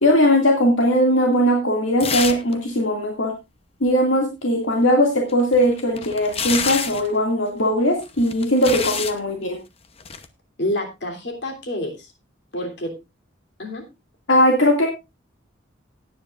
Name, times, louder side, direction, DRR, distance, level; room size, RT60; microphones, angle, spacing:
voice 1, 0.0-3.3 3.8-9.6 14.3-14.9, equal, 75° left, 0 dB, 2.3 m, -19 dB
sound 1, 2.0-2.5 2.8-2.9 5.3-7.1 8.0-9.2 10.0-10.3, left 6 dB, 30° left, 0.8 m, -27 dB
voice 2, 10.6-12.1 12.5-12.9 13.6-13.8, left 1 dB, 60° left, 2 dB, 3.3 m, -28 dB
18.0 x 9.4 x 2.5 m, 0.25 s
head